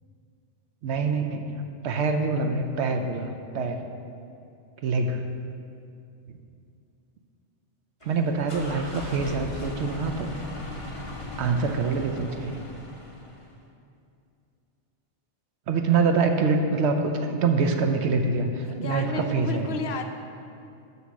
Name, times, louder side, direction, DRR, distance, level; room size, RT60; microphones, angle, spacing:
voice 1, 0.8-3.9 4.8-5.3 6.3-6.4 8.0-10.4 11.4-12.6 15.7-19.7, right 4 dB, 70° right, 5 dB, 0.9 m, -25 dB
sound 1, 8.0-13.6, left 2 dB, 30° left, 1.2 m, -38 dB
voice 2, 18.7-20.0, left 4 dB, 65° left, 5 dB, 0.9 m, -32 dB
6.9 x 6.2 x 6.3 m, 2.5 s
omnidirectional pair, 1.2 m